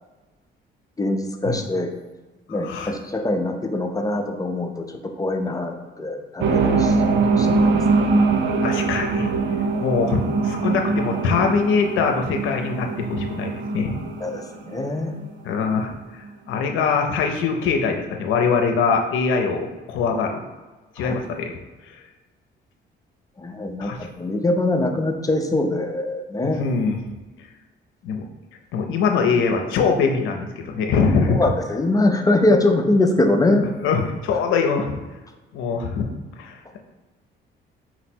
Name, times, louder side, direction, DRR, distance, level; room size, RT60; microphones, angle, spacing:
voice 1, 1.0-1.9 2.5-7.0 7.4-8.2 9.7-9.8 14.2-15.1 21.0-21.1 23.4-23.9 24.2-26.6 31.3-33.7, left 2 dB, 20° left, 4 dB, 0.4 m, -23 dB
sound 1, 6.4-15.3 15.6-15.7, right 4 dB, 70° right, 0.5 m, -22 dB
voice 2, 8.6-9.3 9.8-13.9 15.4-15.9 16.5-20.4 21.0-21.6 23.8-24.0 26.4-27.0 28.0-28.2 28.7-31.4 33.8-35.0 35.5-36.1 36.4-36.8, left 5 dB, 85° left, 3 dB, 0.5 m, -22 dB
4.1 x 2.0 x 4.3 m, 1.2 s
cardioid pair, 90°, 20 cm